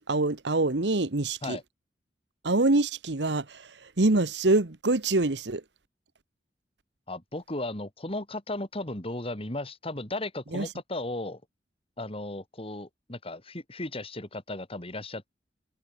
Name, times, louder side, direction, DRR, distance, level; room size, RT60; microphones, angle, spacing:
voice 1, 0.0-1.6 2.4-5.6 10.5-10.7, right 2 dB, 70° right, 1.3 m, -25 dB
voice 2, 7.1-11.4 12.0-15.3, left 2 dB, 35° left, 3.2 m, -35 dB
head